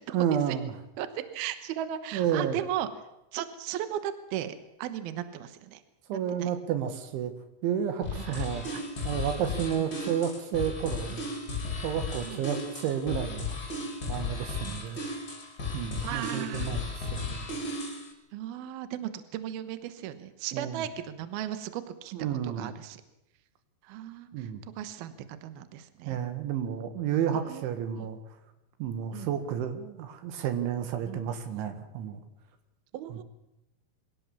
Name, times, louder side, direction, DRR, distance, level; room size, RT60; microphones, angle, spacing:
voice 1, 0.1-0.7 2.1-2.6 6.1-7.3 7.6-11.4 11.8-13.6 14.1-15.0 15.7-16.8 17.1-17.5 20.5-20.8 22.1-22.7 24.3-24.6 26.1-28.2 28.8-32.2, right 9 dB, 90° right, 9 dB, 4.1 m, -31 dB
voice 2, 1.0-2.9 3.3-5.8 6.1-6.5 8.2-8.5 8.7-9.3 9.8-9.9 12.2-12.5 14.6-14.8 16.0-16.7 18.3-22.1 22.4-23.0 23.8-26.2 27.5-28.1 29.1-29.3 31.1-31.2 32.9-33.2, right 11 dB, 70° right, 11 dB, 2.8 m, -37 dB
sound 1, 8.0-18.1, left 3 dB, 25° left, 3.5 m, -35 dB
24.0 x 17.0 x 7.2 m, 0.88 s
omnidirectional pair, 5.3 m